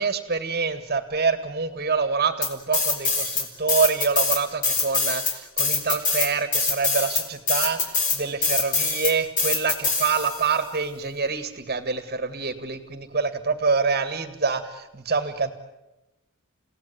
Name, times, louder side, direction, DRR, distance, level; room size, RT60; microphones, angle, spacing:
voice 1, 0.0-15.5, right 5 dB, 40° right, 10 dB, 1.8 m, -26 dB
sound 1, 2.4-3.4 3.7-10.5, left 4 dB, 35° left, 4.1 m, -24 dB
30.0 x 17.0 x 9.7 m, 1.0 s
head